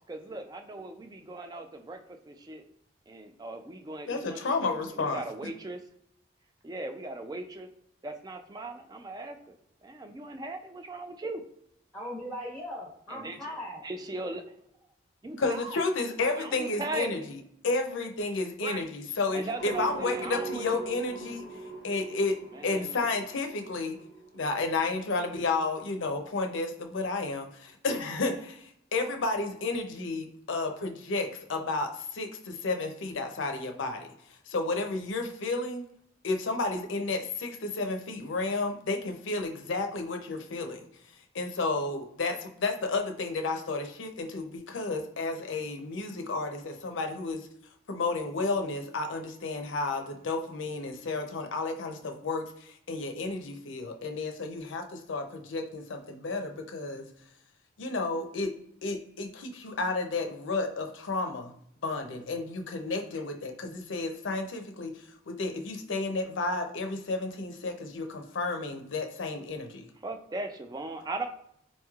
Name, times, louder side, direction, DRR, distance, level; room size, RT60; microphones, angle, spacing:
voice 1, 0.1-2.0 2.2-2.6 3.1-5.8 6.6-7.7 8.0-9.6 9.8-11.4 13.1-13.4 13.8-14.4 15.2-15.8 16.3-17.2 18.6-18.8 19.3-20.6 22.5-23.1 70.0-71.3, right 2 dB, 20° right, 6 dB, 0.3 m, -38 dB
voice 2, 4.1-5.2 15.4-17.4 17.6-21.4 21.8-22.3 22.6-24.0 24.3-34.1 34.5-35.8 36.2-40.8 41.3-47.5 47.9-57.1 57.8-58.5 58.8-61.5 61.8-69.9, left 3 dB, 90° left, 5 dB, 0.5 m, -32 dB
voice 3, 11.9-13.8, equal, 5° left, -5 dB, 0.8 m, -39 dB
sound 1, 19.6-25.4, right 3 dB, 55° right, 0.6 m, -42 dB
4.2 x 3.0 x 2.3 m, 0.72 s
head